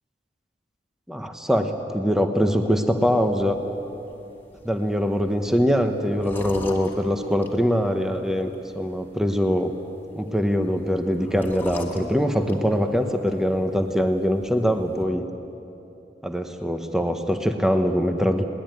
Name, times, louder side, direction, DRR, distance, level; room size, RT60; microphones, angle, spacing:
voice 1, 1.1-3.6 4.6-8.5 8.7-9.7 10.1-15.2 16.2-18.5, equal, 5° right, 6 dB, 1.0 m, -23 dB
sound 1, 3.0-15.1, left 1 dB, 15° left, 2.1 m, -44 dB
21.0 x 19.5 x 9.3 m, 3.0 s
head